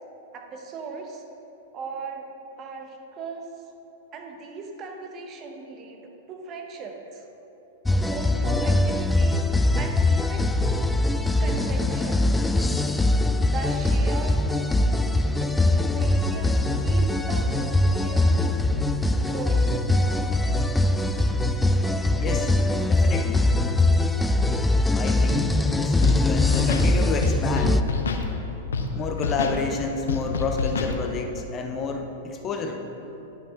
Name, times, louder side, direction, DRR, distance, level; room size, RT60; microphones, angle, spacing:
voice 1, 0.3-1.2 1.7-2.3 2.6-3.5 4.1-7.2 8.1-9.5 9.8-10.5 11.4-12.3 13.4-14.4 15.4-18.4 19.1-19.7, right 4 dB, 35° right, 3 dB, 1.0 m, -38 dB
sound 1, 7.9-27.8, left 2 dB, 5° left, 0.3 m, -22 dB
voice 2, 22.2-22.6 22.8-23.5 24.9-27.9 28.9-32.9, left 4 dB, 30° left, 3 dB, 0.7 m, -30 dB
Scratching (performance technique), 26.0-26.2 26.5-26.9 27.2-28.2 28.7-28.9 29.2-29.6 30.1-30.9, left 4 dB, 85° left, 0.7 m, -27 dB
11.0 x 5.7 x 3.7 m, 3.0 s
hypercardioid pair, 115°, 0 cm